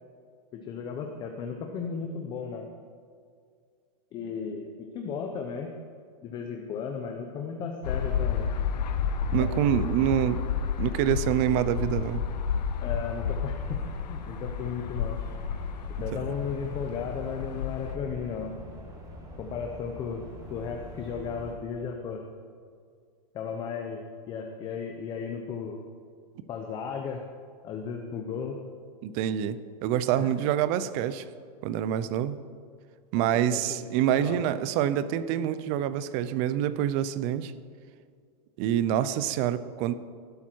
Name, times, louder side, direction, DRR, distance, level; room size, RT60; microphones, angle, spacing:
voice 1, 0.5-2.7 4.1-5.7 6.2-8.5 9.4-9.6 12.8-15.2 16.0-18.6 19.4-20.2 20.5-22.2 23.3-25.8 26.5-27.2 27.6-28.6 30.2-30.3 33.1-33.8 34.1-34.4, left 6 dB, 20° left, 3 dB, 0.8 m, -35 dB
sound 1, 7.8-18.0, left 7 dB, 80° left, 1.2 m, -31 dB
voice 2, 9.3-10.4 10.8-12.2 16.1-16.2 29.0-31.2 31.6-32.4 33.1-37.5 38.6-39.9, right 11 dB, 30° right, 14 dB, 0.6 m, -26 dB
sound 2, 13.6-21.5, equal, 15° right, 2.3 m, -45 dB
16.0 x 12.0 x 4.6 m, 2.1 s
supercardioid pair, 160°, 21 cm